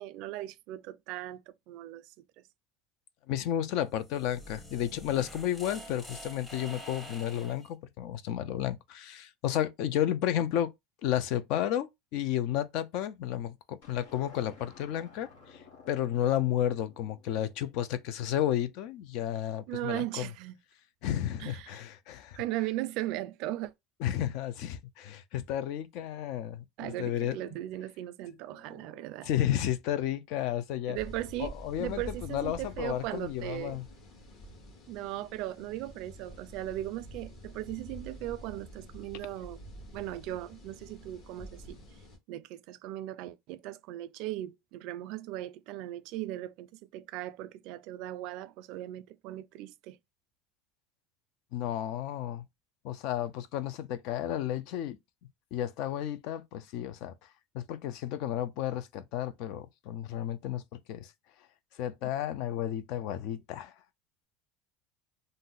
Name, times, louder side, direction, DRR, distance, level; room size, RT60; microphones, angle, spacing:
voice 1, 0.0-2.1 19.7-20.6 21.4-21.8 22.4-23.7 26.8-29.3 30.9-31.5 31.8-33.8 34.9-39.6 39.9-41.8 42.3-50.0 62.0-62.1, right 15 dB, 60° right, 0.3 m, -38 dB
voice 2, 3.3-10.7 11.0-15.6 15.9-20.3 21.0-22.4 24.0-27.5 28.7-31.0 31.4-33.8 51.5-52.4 52.8-55.0 55.5-57.1 57.5-61.1 61.8-63.7, left 11 dB, 65° left, 0.4 m, -32 dB
sound 1, 3.8-7.7, equal, 15° left, 0.8 m, -47 dB
sound 2, 13.8-18.2, left 5 dB, 90° left, 0.9 m, -55 dB
sound 3, 30.9-42.2, equal, 45° left, 1.2 m, -48 dB
2.6 x 2.0 x 3.8 m
supercardioid pair, 135°, 0 cm